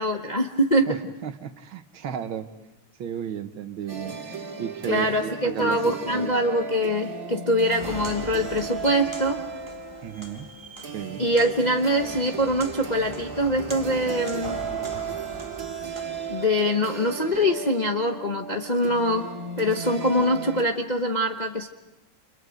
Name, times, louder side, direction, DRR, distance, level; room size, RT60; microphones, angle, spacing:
voice 1, 0.0-0.9 4.9-9.4 11.2-14.6 16.3-19.3 19.6-21.7, equal, 35° left, 3 dB, 0.7 m, -24 dB
voice 2, 0.9-2.5 3.0-4.2 4.6-6.3 10.0-10.5 10.9-11.2, right 8 dB, 80° right, 9 dB, 1.9 m, -33 dB
sound 1, 3.9-20.6, right 5 dB, 45° right, 2.9 m, -36 dB
Walk footsteps, 7.7-16.5, right 1 dB, 15° right, 1.6 m, -41 dB
30.0 x 27.0 x 5.1 m, 0.99 s
omnidirectional pair, 2.2 m